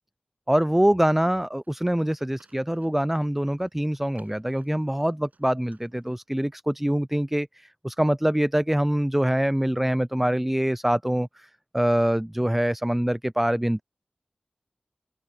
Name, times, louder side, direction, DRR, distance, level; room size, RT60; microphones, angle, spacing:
voice 1, 0.5-11.5 11.7-13.8, equal, 5° right, 0.3 m, -24 dB
Livestock farm animals working animals, 1.6-6.6, right 3 dB, 65° right, 7.1 m, -63 dB
wide cardioid pair, 55°, 3 cm